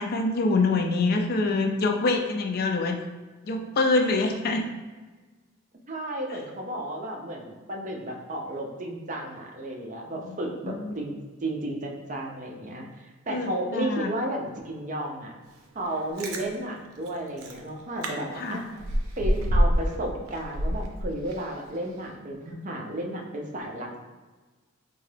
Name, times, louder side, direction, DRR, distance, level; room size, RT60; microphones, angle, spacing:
voice 1, 0.0-3.0 3.4-4.7 10.2-10.4 10.7-11.0 13.3-14.1 18.4-18.6, left 3 dB, 45° left, 3 dB, 0.3 m, -25 dB
voice 2, 5.9-11.1 11.4-15.3 15.7-18.7 19.2-24.0, right 1 dB, 35° right, 0 dB, 0.5 m, -33 dB
Chewing mastication, 15.9-16.4 17.1-17.2 17.4-17.6 18.0-18.1 18.4-20.0 20.3-21.5 21.9-22.0, equal, 90° right, 0.5 m, -25 dB
3.8 x 2.2 x 3.2 m, 1.3 s
head